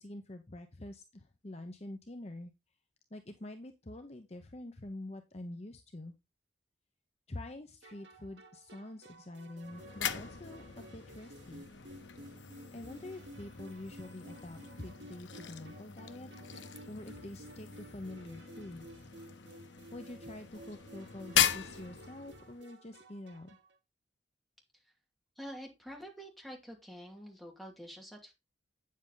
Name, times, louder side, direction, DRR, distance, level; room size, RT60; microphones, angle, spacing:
voice 1, 0.0-2.5 3.1-6.1 7.3-11.7 12.7-16.3 16.9-18.9 19.9-23.6, left 1 dB, 35° left, 6 dB, 0.9 m, -46 dB
sound 1, 7.8-23.8, right 1 dB, 75° right, 1.4 m, -54 dB
sound 2, 9.6-22.6, left 9 dB, 85° left, 0.9 m, -39 dB
voice 2, 25.4-28.3, equal, ahead, 0 dB, 2.5 m, -47 dB
8.9 x 7.5 x 3.9 m, 0.24 s
head